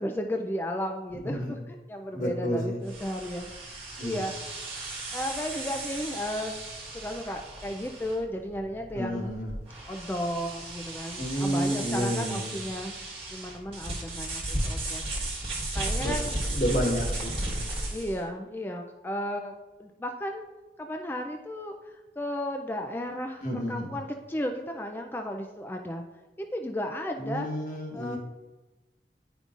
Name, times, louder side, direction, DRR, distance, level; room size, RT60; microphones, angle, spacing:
voice 1, 0.0-1.6 1.9-4.3 5.1-6.5 6.9-9.4 9.9-12.9 13.3-15.0 15.7-16.4 17.9-19.5 19.8-20.4 20.8-26.0 26.4-27.5 27.9-28.2, equal, 10° left, 3 dB, 0.3 m, -34 dB
voice 2, 1.2-1.6 2.1-2.8 4.0-4.2 8.9-9.5 11.2-12.6 16.0-17.7 23.4-24.0 27.2-28.2, equal, 50° left, -4 dB, 1.2 m, -30 dB
sound 1, 2.8-18.2, right 1 dB, 35° right, 1.3 m, -35 dB
9.7 x 5.2 x 2.4 m, 1.1 s
head